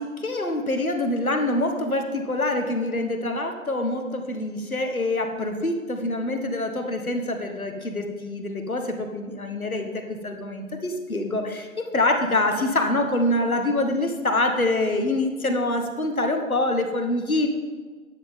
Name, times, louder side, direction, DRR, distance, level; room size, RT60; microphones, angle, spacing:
voice 1, 0.0-17.5, left 2 dB, 75° left, 4 dB, 1.5 m, -25 dB
11.0 x 9.7 x 3.6 m, 1.4 s
figure-of-eight pair, 160°, 42 cm